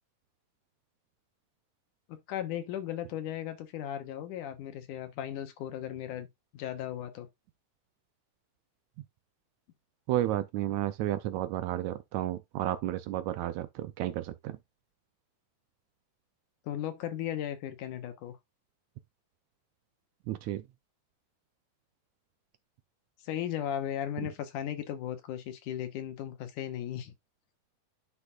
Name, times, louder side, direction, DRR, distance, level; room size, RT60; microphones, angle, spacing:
voice 1, 2.1-6.3 6.5-7.3 16.6-18.4 23.2-27.1, left 10 dB, 70° left, 2.6 m, -36 dB
voice 2, 10.1-14.6 20.3-20.6, right 13 dB, 80° right, 1.6 m, -32 dB
10.5 x 5.9 x 2.4 m
omnidirectional pair, 3.9 m